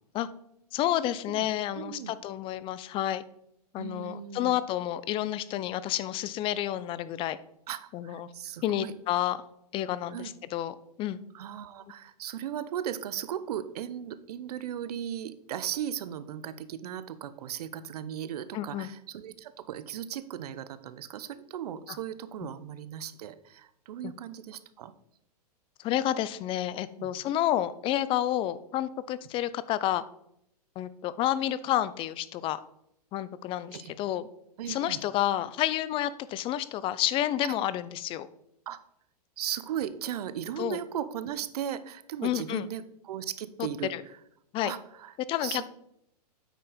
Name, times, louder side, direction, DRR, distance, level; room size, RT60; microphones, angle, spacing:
voice 1, 0.7-3.2 3.7-7.4 7.9-8.3 8.6-9.4 9.7-11.2 18.5-18.9 21.9-22.0 22.4-22.5 24.0-24.1 25.8-30.0 30.8-32.6 33.1-34.3 34.7-38.3 40.6-40.8 42.2-42.7 43.9-44.0 44.5-44.7 45.3-45.7, left 12 dB, 25° left, 16 dB, 0.4 m, -30 dB
voice 2, 1.7-2.1 3.8-4.6 7.7-8.9 10.1-10.3 11.3-24.9 27.0-27.1 33.7-33.9 34.6-35.0 37.4-37.6 38.7-38.8 39.4-43.9 44.6-45.1 45.4-45.7, right 10 dB, 70° right, 13 dB, 0.8 m, -37 dB
9.0 x 4.5 x 5.0 m, 0.77 s
hypercardioid pair, 120°, 21 cm